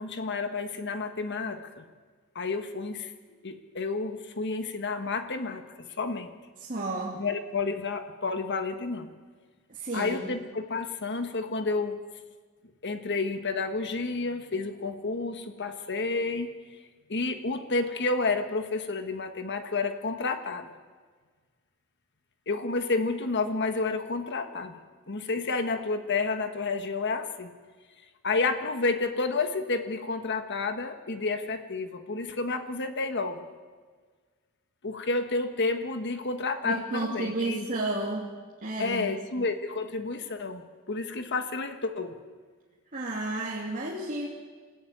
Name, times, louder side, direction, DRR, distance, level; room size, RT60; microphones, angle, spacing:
voice 1, 0.0-1.8 2.3-3.1 3.4-6.3 7.1-9.1 9.9-12.0 12.8-16.5 17.1-20.7 22.5-24.7 25.1-27.5 28.2-33.5 34.8-37.7 38.8-40.6 40.9-42.1, left 3 dB, 50° left, 8 dB, 1.5 m, -30 dB
voice 2, 6.6-7.2 9.7-10.2 36.6-38.3 38.6-39.2 42.9-44.3, right 2 dB, 35° right, -3 dB, 2.9 m, -32 dB
27.5 x 15.5 x 9.3 m, 1.5 s
head